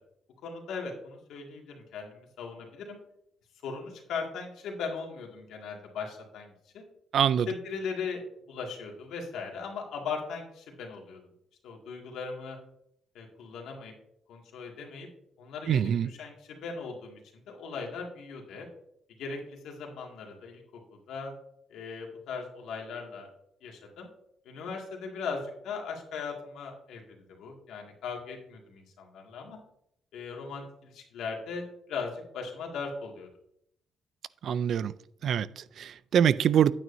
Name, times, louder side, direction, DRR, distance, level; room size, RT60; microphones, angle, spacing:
voice 1, 0.4-3.0 3.6-6.8 7.5-8.2 8.5-11.2 11.6-12.6 13.1-13.9 14.3-15.1 15.4-18.7 19.2-20.6 20.9-21.3 21.7-23.3 23.6-24.1 24.4-29.6 30.1-33.3, left 5 dB, 80° left, 2.1 m, -38 dB
voice 2, 7.1-7.5 15.7-16.1 34.4-34.9 35.2-36.7, right 9 dB, 65° right, 0.3 m, -24 dB
9.2 x 9.0 x 2.7 m
cardioid pair, 90°, 0 cm